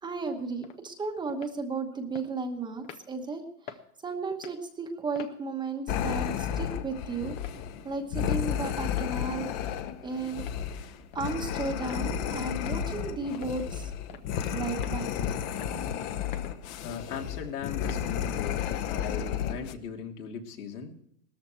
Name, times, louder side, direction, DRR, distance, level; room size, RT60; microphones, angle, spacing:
voice 1, 0.0-7.4 7.8-9.5 10.0-10.5 11.1-13.9 14.5-15.1, right 3 dB, 10° right, 5 dB, 1.0 m, -34 dB
sound 1, 0.6-0.8 1.3-1.6 2.1-2.3 2.8-3.0 3.7-3.8 4.3-4.6 5.1-5.4 5.9-6.1 6.6-6.7 7.4-7.6 8.2-8.3 8.9-9.1 9.7-9.9 10.4-10.6 11.1-11.3 11.9-12.1 12.7-12.8 13.3-13.5 14.1-14.3 14.8-15.0 15.6-15.7 16.3-16.6 17.1-17.2 17.8-18.0 18.6-18.8, left 8 dB, 15° left, 0.5 m, -45 dB
sound 2, 5.9-19.7, left 9 dB, 30° left, 0.8 m, -32 dB
voice 2, 16.8-21.0, left 7 dB, 85° left, 1 dB, 3.2 m, -39 dB
18.0 x 13.5 x 4.5 m, 0.71 s
supercardioid pair, 155°, 44 cm